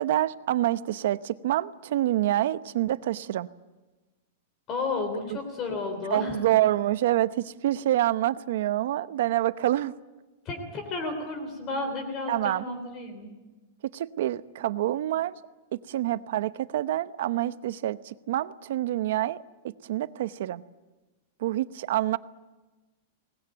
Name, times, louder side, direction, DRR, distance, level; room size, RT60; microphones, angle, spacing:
voice 1, 0.0-3.5 5.3-5.4 6.1-9.9 12.3-12.7 13.8-15.3 15.7-20.6 21.4-22.2, right 13 dB, 55° right, 15 dB, 0.8 m, -27 dB
voice 2, 4.7-6.4 10.4-13.3, left 3 dB, 25° left, 6 dB, 3.4 m, -32 dB
23.5 x 20.0 x 9.1 m, 1.2 s
supercardioid pair, 175°, 0 cm